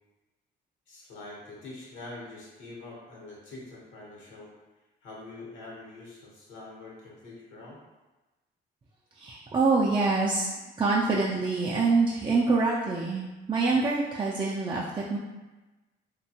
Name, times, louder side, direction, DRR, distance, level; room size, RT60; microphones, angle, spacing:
voice 1, 0.9-4.5 5.0-7.8, left 2 dB, 75° left, -4 dB, 1.0 m, -45 dB
voice 2, 9.2-10.5 10.8-15.2, right 3 dB, 25° right, -5 dB, 0.4 m, -25 dB
2.8 x 2.2 x 2.7 m, 1.1 s
cardioid pair, 90°, 20 cm